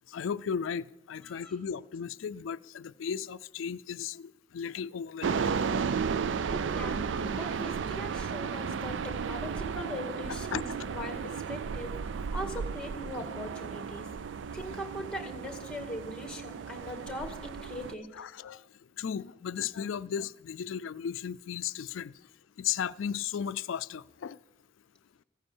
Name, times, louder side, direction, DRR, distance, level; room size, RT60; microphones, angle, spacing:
voice 1, 0.1-5.5 10.5-10.6 18.2-18.6 19.0-22.1 22.6-24.4, left 7 dB, 85° left, 0.4 m, -35 dB
voice 2, 1.2-1.6 6.5-14.1 14.5-18.2, left 1 dB, 5° left, 1.9 m, -41 dB
sound 1, 5.2-17.9, right 6 dB, 65° right, 0.4 m, -34 dB
16.0 x 9.8 x 7.2 m
head